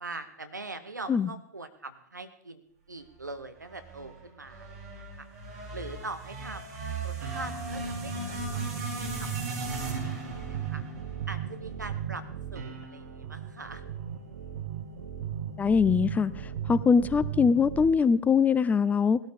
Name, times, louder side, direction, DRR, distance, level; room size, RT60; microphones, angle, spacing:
voice 1, 0.0-2.6 2.9-5.3 5.7-9.6 10.0-10.8 11.3-12.2 12.5-13.8, right 3 dB, 90° right, 9 dB, 1.2 m, -42 dB
sound 1, 3.6-11.9, right 2 dB, 50° right, 5.8 m, -37 dB
sound 2, 7.2-17.9, right 9 dB, 65° right, 2.0 m, -37 dB
voice 2, 15.6-16.3 16.7-19.2, left 6 dB, 15° left, 17 dB, 0.5 m, -22 dB
18.5 x 12.5 x 3.6 m, 0.65 s
figure-of-eight pair, 95°, 9 cm